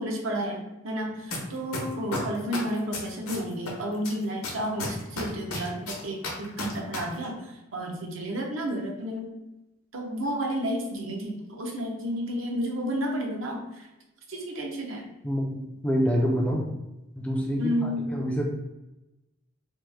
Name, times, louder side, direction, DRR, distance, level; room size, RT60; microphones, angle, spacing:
voice 1, 0.0-9.3 9.9-13.9 14.3-15.1 17.6-18.0, equal, 65° right, 1 dB, 0.6 m, -31 dB
sound 1, 1.3-1.4 1.7-3.7 4.0-7.0 7.2-7.3, left 3 dB, 90° left, 0.8 m, -32 dB
voice 2, 15.2-16.7 17.2-18.4, equal, 5° left, -1 dB, 0.3 m, -27 dB
3.0 x 2.1 x 3.3 m, 0.97 s
head